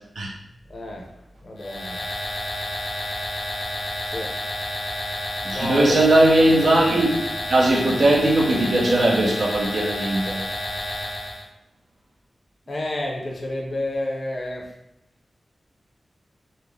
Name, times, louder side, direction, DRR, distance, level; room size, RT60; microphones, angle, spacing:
voice 1, 0.7-1.1 1.4-2.0 4.1-4.3 5.5-6.0 12.7-14.7, left 1 dB, 45° left, -1 dB, 0.6 m, -29 dB
sound 1, 1.6-11.5, left 1 dB, 85° left, 0.7 m, -30 dB
voice 2, 5.4-7.1 7.5-10.5, right 1 dB, 75° right, -3 dB, 0.9 m, -19 dB
4.0 x 2.1 x 3.4 m, 0.89 s
wide cardioid pair, 140°, 0 cm